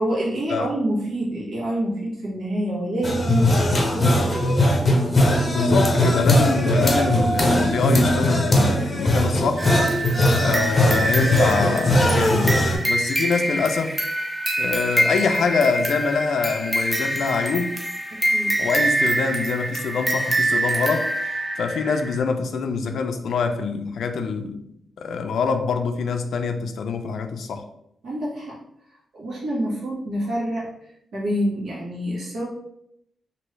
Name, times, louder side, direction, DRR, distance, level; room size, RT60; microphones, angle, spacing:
voice 1, 0.0-4.4 18.1-18.6 28.0-28.6 29.1-30.7 31.1-32.4, right 1 dB, 75° right, 1.2 m, -27 dB
sound 1, 3.0-12.8, left 1 dB, 25° left, 0.7 m, -19 dB
voice 2, 5.5-9.7 10.3-14.0 14.6-17.7 18.6-21.1 21.6-24.6 25.0-27.6, left 5 dB, 80° left, 0.4 m, -25 dB
sound 2, 9.6-22.2, right 1 dB, 10° right, 0.4 m, -25 dB
3.1 x 2.6 x 3.1 m
wide cardioid pair, 140°, 0 cm